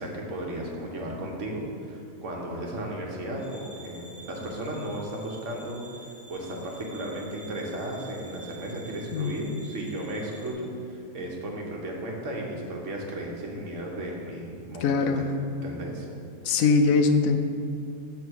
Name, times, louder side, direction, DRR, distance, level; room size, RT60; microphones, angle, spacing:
voice 1, 0.0-15.3 15.6-16.1, right 1 dB, 60° right, -1 dB, 1.3 m, -35 dB
sound 1, 3.4-10.5, right 2 dB, 40° left, 1.2 m, -49 dB
voice 2, 14.8-15.2 16.4-17.4, left 4 dB, 75° left, 6 dB, 1.0 m, -22 dB
6.7 x 3.5 x 6.2 m, 2.5 s
omnidirectional pair, 1.5 m